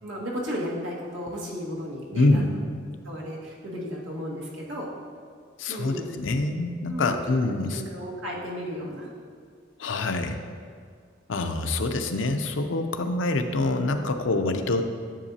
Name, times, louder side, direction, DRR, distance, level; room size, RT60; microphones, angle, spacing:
voice 1, 0.0-2.5 3.0-4.9 5.7-6.2 6.9-7.2 7.7-9.1, equal, 85° right, -5 dB, 1.8 m, -34 dB
voice 2, 2.1-2.5 5.6-7.8 9.8-10.4 11.3-14.8, left 2 dB, 85° left, 7 dB, 0.6 m, -25 dB
10.0 x 7.4 x 2.8 m, 2.1 s
head